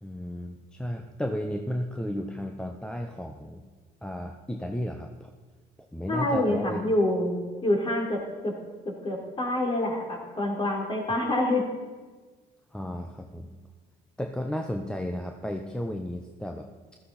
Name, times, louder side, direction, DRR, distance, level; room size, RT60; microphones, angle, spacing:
voice 1, 0.0-3.6 4.0-5.3 5.9-6.8 12.7-13.5 14.2-16.7, equal, 5° left, 3 dB, 0.8 m, -33 dB
voice 2, 6.1-8.5 8.9-11.6, left 1 dB, 30° left, 0 dB, 3.6 m, -27 dB
15.0 x 13.5 x 4.4 m, 1.4 s
cardioid pair, 110°, 17 cm